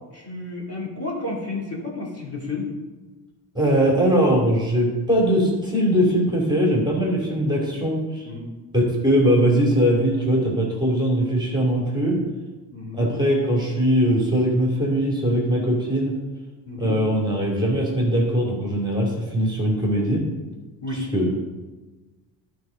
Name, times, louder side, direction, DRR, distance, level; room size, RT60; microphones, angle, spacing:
voice 1, 0.1-2.7 8.2-8.5 12.7-13.1 16.7-17.0 19.3-19.4 20.8-21.1, left 2 dB, 30° left, -3 dB, 3.2 m, -31 dB
voice 2, 3.5-8.3 8.7-12.2 12.9-16.2 16.8-20.2 21.1-21.3, equal, 10° right, -3 dB, 2.9 m, -21 dB
11.0 x 4.8 x 5.3 m, 1.2 s
supercardioid pair, 75°, 47 cm